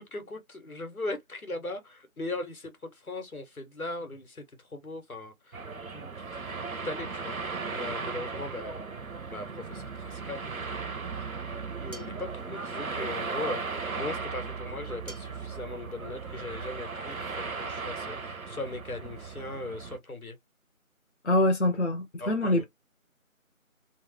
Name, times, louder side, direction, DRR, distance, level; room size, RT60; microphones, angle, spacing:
voice 1, 0.0-5.7 5.9-6.4 6.8-7.4 7.7-8.8 9.3-10.7 11.8-20.4 22.2-22.6, left 2 dB, 80° left, 1.3 m, -39 dB
sound 1, 5.5-20.0, right 4 dB, 75° right, 0.8 m, -37 dB
sound 2, 11.9-12.3 15.1-15.5, right 1 dB, 40° right, 0.6 m, -47 dB
voice 2, 21.2-22.6, left 1 dB, 55° left, 0.6 m, -25 dB
3.1 x 2.0 x 3.1 m
figure-of-eight pair, 175°, 42 cm